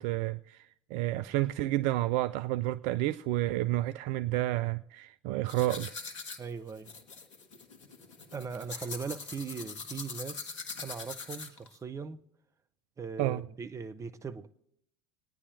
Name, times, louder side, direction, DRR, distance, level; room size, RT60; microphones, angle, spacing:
voice 1, 0.0-5.9 13.2-13.4, right 16 dB, 50° right, 0.4 m, -30 dB
sound 1, 5.5-11.8, left 4 dB, 70° left, 1.2 m, -43 dB
voice 2, 6.4-6.9 8.3-12.2 13.0-14.6, right 5 dB, 20° right, 0.7 m, -40 dB
25.0 x 9.8 x 2.7 m
figure-of-eight pair, 80°, 16 cm